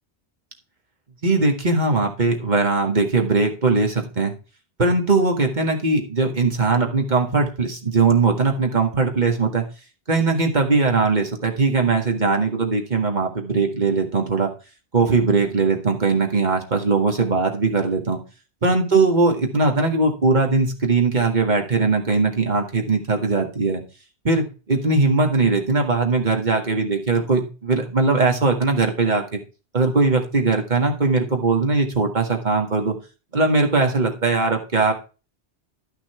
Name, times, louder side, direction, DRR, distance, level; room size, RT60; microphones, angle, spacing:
voice 1, 1.2-4.3 4.8-9.7 10.1-14.5 14.9-18.2 18.6-23.8 24.2-29.4 29.7-33.0 33.3-34.9, right 3 dB, 40° right, 3 dB, 1.9 m, -20 dB
12.0 x 6.0 x 4.3 m, 0.33 s
omnidirectional pair, 1.2 m